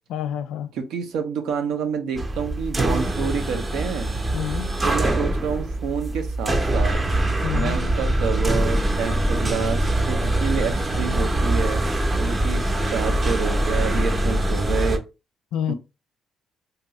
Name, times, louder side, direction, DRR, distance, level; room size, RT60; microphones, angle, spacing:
voice 1, 0.1-0.7 4.3-4.7 7.4-7.8 15.5-15.7, left 9 dB, 90° left, 0.3 m, -28 dB
voice 2, 0.7-4.1 4.8-7.0 7.5-11.8 12.2-15.0 15.7-15.8, right 6 dB, 85° right, 0.6 m, -28 dB
sound 1, 2.1-15.0, right 1 dB, 25° right, 0.6 m, -23 dB
2.8 x 2.3 x 2.8 m
cardioid pair, 90°, 0 cm